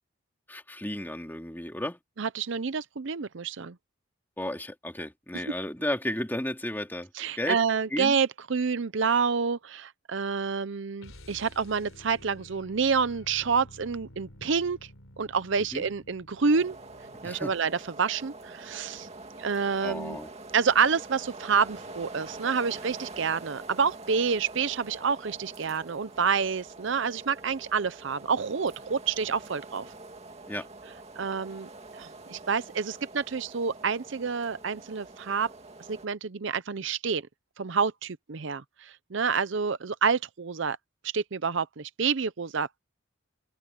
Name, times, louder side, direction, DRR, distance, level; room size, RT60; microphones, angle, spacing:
voice 1, 0.5-2.0 4.4-7.1 7.4-7.6 7.9-8.2 15.7-15.8 17.2-17.5 19.8-20.3 30.5-30.7, left 1 dB, 10° left, 2.7 m, -33 dB
voice 2, 2.2-3.8 7.1-14.9 15.2-16.8 17.2-19.1 19.4-20.2 20.5-29.9 31.2-35.5 35.9-37.2 37.6-40.8 41.1-42.8, right 5 dB, 65° right, 0.6 m, -28 dB
sound 1, 11.0-17.4, left 1 dB, 85° left, 3.8 m, -51 dB
sound 2, 16.5-36.1, right 2 dB, 30° right, 2.4 m, -45 dB
head